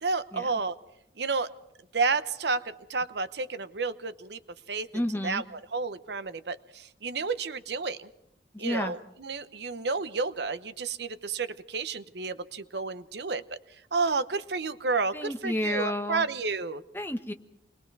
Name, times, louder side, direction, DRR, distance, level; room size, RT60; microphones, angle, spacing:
voice 1, 0.0-0.8 1.2-1.5 1.9-4.4 4.7-4.9 5.2-8.1 8.6-13.4 13.9-16.8, right 4 dB, 70° right, 13 dB, 0.8 m, -31 dB
voice 2, 4.9-5.4 8.5-8.9 15.1-16.3 16.9-17.3, left 1 dB, 10° left, 5 dB, 1.1 m, -31 dB
29.0 x 21.0 x 4.7 m, 0.75 s
head